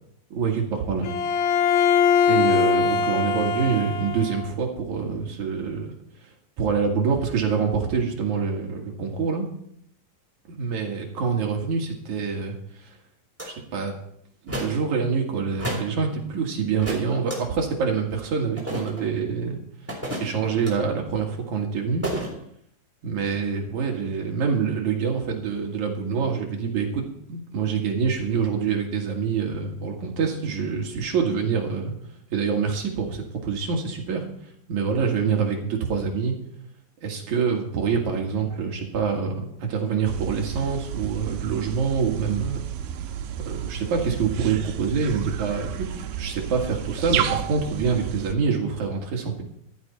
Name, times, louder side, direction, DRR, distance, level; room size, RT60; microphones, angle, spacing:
voice 1, 0.3-1.1 2.3-5.9 6.2-6.3 6.6-9.5 10.5-12.9 13.4-14.0 14.4-19.6 20.2-22.1 23.0-31.9 32.3-34.2 34.7-36.4 37.0-42.6 43.4-49.4, right 5 dB, 60° right, 1 dB, 3.1 m, -26 dB
Bowed string instrument, 1.0-4.5, left 6 dB, 70° left, 1.8 m, -21 dB
sound 1, 13.4-13.5 14.5-14.8 15.6-15.9 16.8-17.4 18.6-19.1 19.9-20.7 22.0-22.3, right 1 dB, 5° right, 3.2 m, -31 dB
sound 2, 40.0-48.3, right 10 dB, 85° right, 2.7 m, -32 dB
14.5 x 12.5 x 4.3 m, 0.70 s
omnidirectional pair, 4.2 m